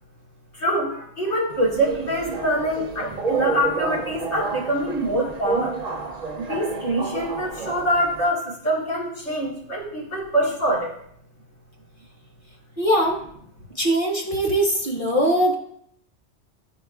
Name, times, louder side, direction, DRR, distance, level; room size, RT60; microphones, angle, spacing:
voice 1, 0.5-5.8 6.4-10.9, right 1 dB, 75° left, -6 dB, 2.8 m, -24 dB
Subway metro underground, 1.5-8.3, right 4 dB, 45° right, 0.6 m, -30 dB
voice 2, 12.8-13.3 13.7-15.6, right 1 dB, 30° left, -1 dB, 1.3 m, -21 dB
12.0 x 4.6 x 2.4 m, 0.68 s
omnidirectional pair, 1.2 m